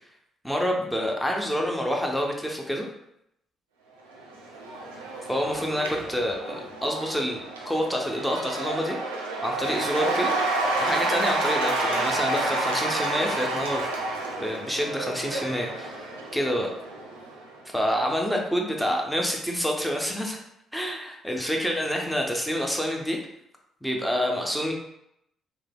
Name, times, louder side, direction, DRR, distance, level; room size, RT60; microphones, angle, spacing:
voice 1, 0.4-2.9 5.3-9.0 9.4-10.3 10.8-13.9 14.4-16.7 17.7-20.4 20.7-23.2 23.8-24.7, equal, 5° left, 0 dB, 0.6 m, -27 dB
Cheering / Applause / Crowd, 4.1-17.6, right 2 dB, 90° right, 0.4 m, -30 dB
3.2 x 2.1 x 2.2 m, 0.80 s
hypercardioid pair, 50°, 0 cm